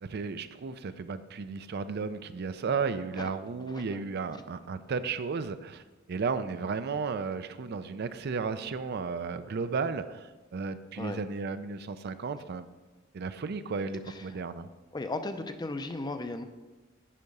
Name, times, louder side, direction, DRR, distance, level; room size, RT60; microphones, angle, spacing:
voice 1, 0.0-5.8 6.1-12.7 13.1-14.7, right 5 dB, 50° right, 11 dB, 0.4 m, -34 dB
voice 2, 3.7-4.0 11.0-11.2 14.1-14.2 14.9-16.4, left 2 dB, 20° left, 8 dB, 0.5 m, -36 dB
10.0 x 4.8 x 5.3 m, 1.2 s
head